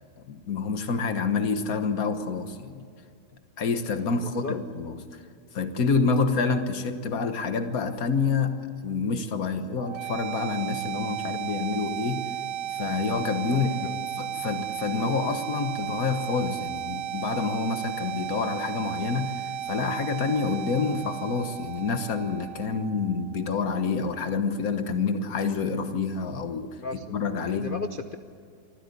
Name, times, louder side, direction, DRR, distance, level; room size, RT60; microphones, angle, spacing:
voice 1, 0.3-2.8 3.6-5.2 5.5-12.3 12.7-13.9 14.2-26.8 27.1-27.8, left 4 dB, 50° left, 8 dB, 1.6 m, -28 dB
voice 2, 4.1-4.5 13.5-14.0 26.8-28.2, left 4 dB, 85° left, 8 dB, 0.4 m, -36 dB
sound 1, 9.8-23.7, right 12 dB, 60° right, 0.8 m, -34 dB
25.0 x 14.5 x 8.4 m, 2.4 s
omnidirectional pair, 2.1 m